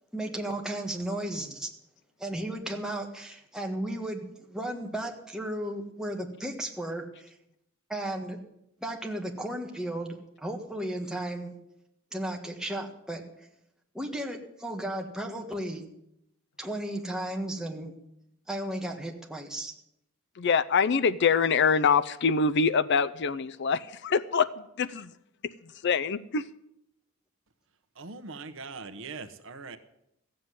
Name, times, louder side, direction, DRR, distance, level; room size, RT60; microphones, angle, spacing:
voice 1, 0.1-1.7 2.2-7.3 7.9-8.4 8.8-11.5 12.1-13.2 13.9-15.8 16.6-17.9 18.5-19.7, right 1 dB, 5° right, 1 dB, 1.7 m, -34 dB
voice 2, 20.4-25.0 25.8-26.4, left 5 dB, 55° left, 15 dB, 0.5 m, -25 dB
voice 3, 28.0-29.8, right 4 dB, 65° right, 10 dB, 1.1 m, -41 dB
15.0 x 7.7 x 9.5 m, 0.80 s
head